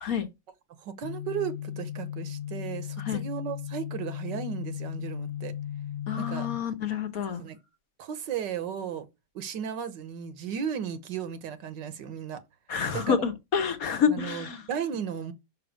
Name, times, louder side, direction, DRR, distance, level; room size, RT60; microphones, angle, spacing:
voice 1, 0.8-5.5 6.2-6.5 7.2-7.6 8.0-9.1 9.3-12.4 12.9-13.3 14.1-15.3, right 8 dB, 70° right, 1.5 m, -35 dB
sound 1, 1.0-6.6, left 10 dB, 80° left, 0.5 m, -36 dB
voice 2, 6.1-7.4 12.7-14.6, left 7 dB, 55° left, 1.2 m, -28 dB
6.2 x 5.6 x 6.3 m
omnidirectional pair, 2.1 m